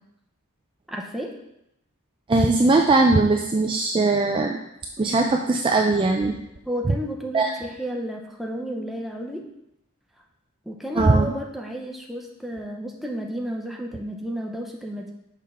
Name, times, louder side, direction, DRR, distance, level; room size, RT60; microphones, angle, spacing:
voice 1, 0.9-1.3 6.7-9.4 10.7-15.1, equal, ahead, 1 dB, 0.7 m, -32 dB
voice 2, 2.3-4.6 5.0-6.3 7.3-7.6 11.0-11.2, right 3 dB, 25° right, 2 dB, 0.4 m, -20 dB
6.4 x 3.6 x 5.6 m, 0.83 s
head